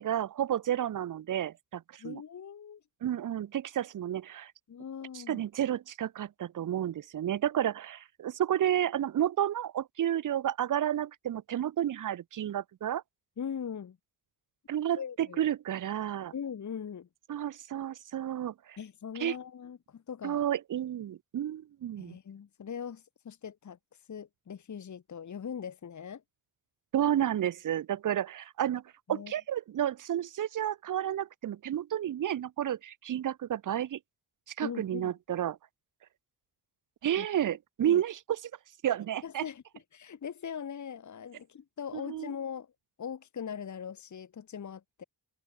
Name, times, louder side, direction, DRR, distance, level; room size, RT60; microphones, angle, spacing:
voice 1, 0.0-2.2 3.0-4.5 5.1-13.0 14.7-16.3 17.3-18.8 19.2-19.4 20.2-22.2 26.9-28.8 29.1-34.0 34.6-35.6 37.0-38.5 38.8-39.4 41.9-42.3, right 11 dB, 50° right, 0.6 m, -31 dB
voice 2, 2.0-2.8 4.7-5.4 13.4-14.0 14.9-15.4 16.3-17.1 18.8-20.4 22.0-23.8 24.1-26.2 29.1-29.3 34.6-35.1 37.2-37.3 37.8-38.0 39.2-39.6 39.9-42.7 43.0-45.0, left 7 dB, 45° left, 1.3 m, -40 dB
wide cardioid pair, 145°, 41 cm